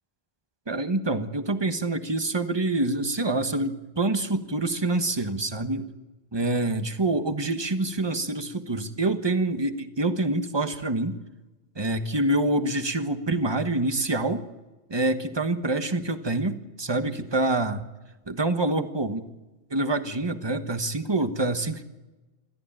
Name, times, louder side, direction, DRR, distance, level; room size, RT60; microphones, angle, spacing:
voice 1, 0.7-5.9 6.3-11.1 11.8-14.5 14.9-17.8 18.3-19.2 19.7-21.9, right 2 dB, 25° right, 8 dB, 1.3 m, -26 dB
27.5 x 14.0 x 9.0 m, 1.1 s
omnidirectional pair, 1.1 m